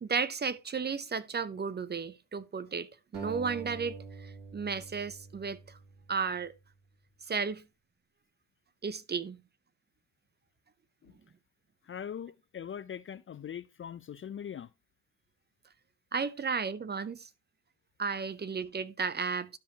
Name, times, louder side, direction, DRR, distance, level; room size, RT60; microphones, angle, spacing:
voice 1, 0.0-5.8 6.1-6.5 7.3-7.6 8.8-9.4 16.1-17.3 18.0-19.6, right 5 dB, 25° right, 0.6 m, -34 dB
sound 1, 3.1-6.4, right 5 dB, 75° right, 2.8 m, -46 dB
voice 2, 11.8-14.7, left 8 dB, 35° left, 0.4 m, -41 dB
12.5 x 5.1 x 2.8 m
cardioid pair, 90°, 38 cm